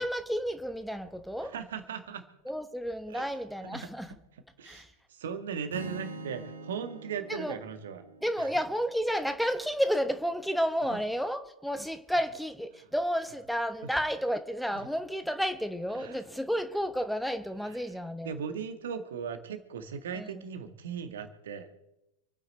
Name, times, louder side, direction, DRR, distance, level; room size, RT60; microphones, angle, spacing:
voice 1, 0.0-1.5 2.4-4.1 4.6-4.9 7.3-7.6 8.2-18.3 20.1-20.4, equal, ahead, 0.9 m, -31 dB
voice 2, 1.4-2.2 3.1-3.3 3.6-3.9 4.6-8.0 8.4-8.5 10.9-11.0 13.8-13.9 16.0-16.2 18.2-21.7, right 7 dB, 60° right, 1.8 m, -38 dB
Strum, 5.7-9.9, right 3 dB, 75° right, 1.6 m, -44 dB
28.0 x 9.6 x 4.3 m
figure-of-eight pair, 90°, 0 cm